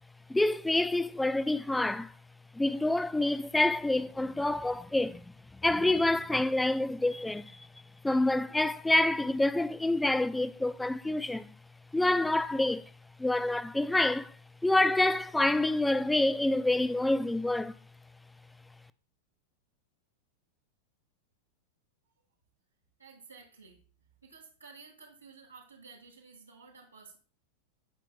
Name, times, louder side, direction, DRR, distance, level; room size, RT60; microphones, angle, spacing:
voice 1, 0.3-2.1 2.5-5.2 5.6-7.7 8.0-11.5 11.9-12.8 13.2-14.3 14.6-17.7, left 2 dB, 5° left, 0.3 m, -27 dB
voice 2, 23.0-23.8 24.2-27.2, right 5 dB, 85° right, 1.7 m, -53 dB
16.5 x 5.7 x 2.2 m
figure-of-eight pair, 90°, 0 cm